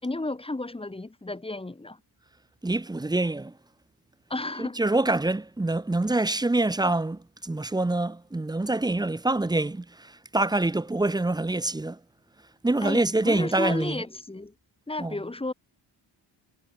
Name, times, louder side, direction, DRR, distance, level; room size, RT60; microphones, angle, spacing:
voice 1, 0.0-2.0 4.3-4.8 12.8-14.5 14.9-15.5, left 2 dB, 10° left, 5.5 m, -32 dB
voice 2, 2.6-3.5 4.6-12.0 12.6-14.0 15.0-15.2, right 2 dB, 10° right, 0.9 m, -26 dB
wide cardioid pair, 180°, 48 cm